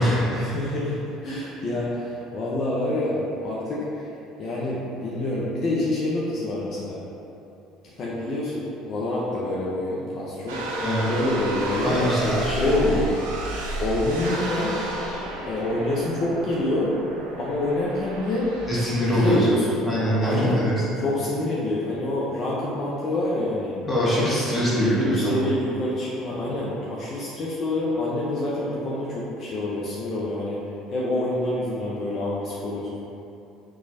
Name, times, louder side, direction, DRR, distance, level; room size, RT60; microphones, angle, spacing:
voice 1, 0.3-4.0 4.4-7.0 7.8-12.0 12.5-13.2 13.8-14.8 15.4-16.9 17.4-18.5 19.0-19.8 20.2-20.6 20.9-23.8 24.5-30.6 30.9-33.0, left 1 dB, 50° left, -6 dB, 0.5 m, -27 dB
sound 1, 10.5-19.3, right 2 dB, 85° right, 0.5 m, -31 dB
voice 2, 11.8-12.6 18.7-19.5 19.8-20.8 23.8-25.4, equal, 15° left, -9 dB, 1.4 m, -23 dB
3.0 x 2.3 x 4.0 m, 2.8 s
hypercardioid pair, 70°, 0 cm